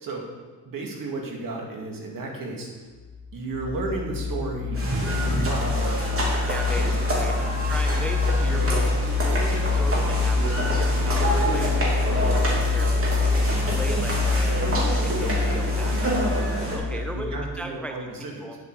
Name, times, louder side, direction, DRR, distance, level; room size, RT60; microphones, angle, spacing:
voice 1, 0.6-2.7 3.3-4.8 5.1-6.0 6.8-7.0 8.5-8.9 16.9-18.5, right 2 dB, 55° right, 0 dB, 2.3 m, -33 dB
sound 1, 3.1-17.5, left 3 dB, 50° left, 0.8 m, -25 dB
sound 2, 4.7-16.8, right 1 dB, 35° right, 2.9 m, -28 dB
voice 2, 6.4-7.3 7.7-8.8 9.2-14.6 15.0-17.9 18.4-18.6, equal, 5° left, 4 dB, 0.6 m, -38 dB
9.2 x 7.7 x 4.8 m, 1.4 s
cardioid pair, 100°, 40 cm